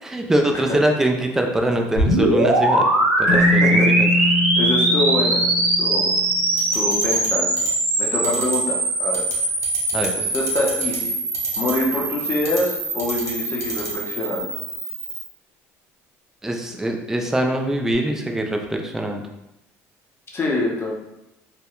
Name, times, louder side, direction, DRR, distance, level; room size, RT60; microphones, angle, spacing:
voice 1, 0.0-2.9 3.2-4.1 9.9-10.1 16.4-19.2, right 1 dB, 5° right, 2 dB, 0.3 m, -23 dB
sound 1, 1.9-15.3, right 2 dB, 90° right, 0.6 m, -22 dB
Keyboard (musical), 3.3-6.5, left 1 dB, 75° left, 0.4 m, -23 dB
voice 2, 3.3-6.1 6.7-7.5 8.0-9.2 10.1-11.1 11.6-14.5 20.3-20.9, left 2 dB, 35° left, -1 dB, 0.6 m, -25 dB
sound 2, 6.6-7.3 7.6-7.7 8.2-8.6 9.1-9.3 9.6-10.1 10.3-11.0 11.3-11.7 12.4-12.6 13.0-13.3 13.6-13.9, right 3 dB, 45° right, 0.8 m, -33 dB
2.6 x 2.1 x 2.3 m, 0.90 s
supercardioid pair, 80°, 7 cm